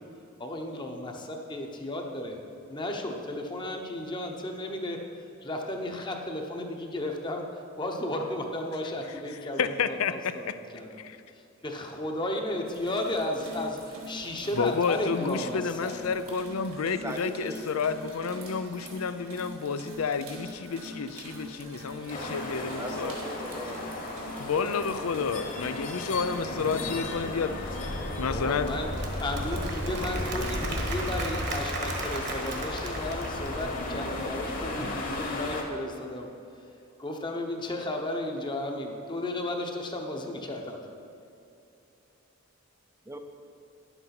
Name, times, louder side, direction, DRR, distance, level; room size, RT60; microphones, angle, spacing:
voice 1, 0.4-2.4 2.7-5.0 5.4-7.4 7.8-11.0 11.3-15.9 28.3-28.9 29.2-36.3 37.0-40.8, left 1 dB, 20° left, 2 dB, 0.9 m, -34 dB
voice 2, 9.6-10.6 11.0-11.2 14.6-23.2 24.4-27.6 28.2-28.7, left 5 dB, 80° left, 12 dB, 0.5 m, -30 dB
sound 1, 12.6-26.9, equal, 80° right, 1.9 m, -44 dB
voice 3, 17.0-17.8 22.8-23.8 43.1-43.2, right 1 dB, 15° right, 6 dB, 0.5 m, -38 dB
sound 2, 22.1-35.6, left 1 dB, 40° left, 1.3 m, -34 dB
Applause / Crowd, 28.4-33.8, right 3 dB, 50° right, 1.4 m, -37 dB
10.5 x 8.0 x 5.9 m, 2.7 s
head